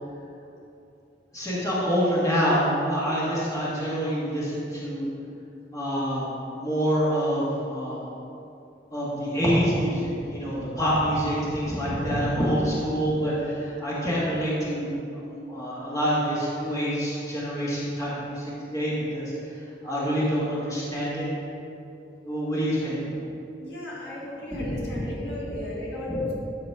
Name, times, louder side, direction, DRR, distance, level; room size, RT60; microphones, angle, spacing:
voice 1, 1.3-5.1 5.7-8.1 8.9-13.3 13.8-19.3 19.8-21.3 22.2-23.0 24.5-25.0 25.5-25.6 26.1-26.3, equal, 20° left, -8 dB, 2.1 m, -26 dB
voice 2, 23.6-26.3, left 1 dB, 65° left, -5 dB, 2.1 m, -36 dB
12.5 x 4.8 x 4.9 m, 2.7 s
head